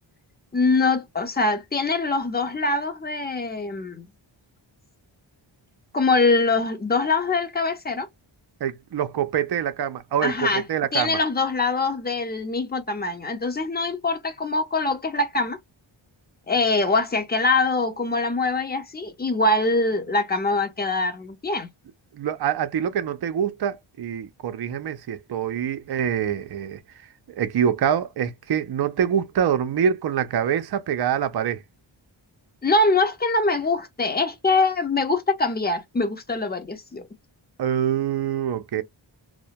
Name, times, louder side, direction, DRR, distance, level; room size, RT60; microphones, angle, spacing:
voice 1, 0.5-4.1 5.9-8.1 10.2-10.6 10.9-15.6 16.5-21.7 32.6-37.1, left 3 dB, 20° left, 0.7 m, -23 dB
voice 2, 8.6-11.2 22.1-26.8 27.3-31.6 37.6-38.8, right 8 dB, 55° right, 0.5 m, -25 dB
2.1 x 2.1 x 2.7 m
wide cardioid pair, 85°, 48 cm